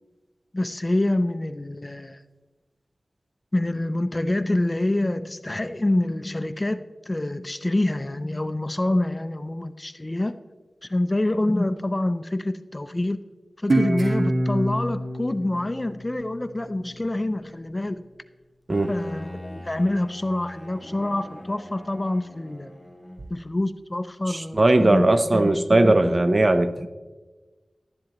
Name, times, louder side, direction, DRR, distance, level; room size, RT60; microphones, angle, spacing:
voice 1, 0.5-2.2 3.5-10.3 10.8-13.2 13.6-18.1 18.9-22.7 23.3-26.2, left 1 dB, 25° left, 12 dB, 0.4 m, -26 dB
Guitar, 13.7-16.9, right 1 dB, 75° right, 1.5 m, -26 dB
Bowed string instrument, 18.7-23.5, left 1 dB, ahead, 1.0 m, -41 dB
voice 2, 24.3-26.9, right 2 dB, 40° right, 10 dB, 0.6 m, -19 dB
11.5 x 10.5 x 3.0 m, 1.3 s
wide cardioid pair, 65°, 0 cm